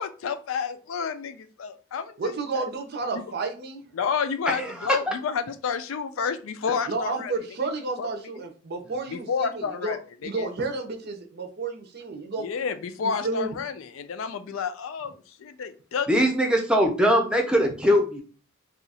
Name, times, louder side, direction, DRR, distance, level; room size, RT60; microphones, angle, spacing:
voice 1, 0.0-2.7 3.1-3.3 3.9-7.5 8.0-8.1 8.4-8.5 9.1-10.5 12.4-16.2, left 6 dB, 75° left, 0.4 m, -30 dB
voice 2, 2.2-3.8 6.9-10.0 10.2-12.5 13.0-13.5, right 3 dB, 50° right, 0.6 m, -31 dB
voice 3, 16.1-18.2, equal, 5° right, 0.6 m, -21 dB
2.7 x 2.4 x 4.0 m
head